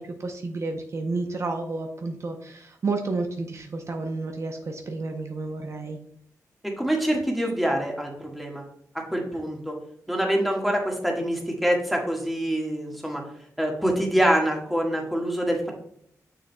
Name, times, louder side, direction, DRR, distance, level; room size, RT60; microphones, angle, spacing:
voice 1, 0.0-6.0, right 3 dB, 50° right, 4 dB, 0.7 m, -31 dB
voice 2, 6.6-8.6 8.9-9.8 10.1-13.2 13.6-15.7, equal, ahead, 0 dB, 1.6 m, -25 dB
6.6 x 6.3 x 2.2 m, 0.67 s
cardioid pair, 80°, 6 cm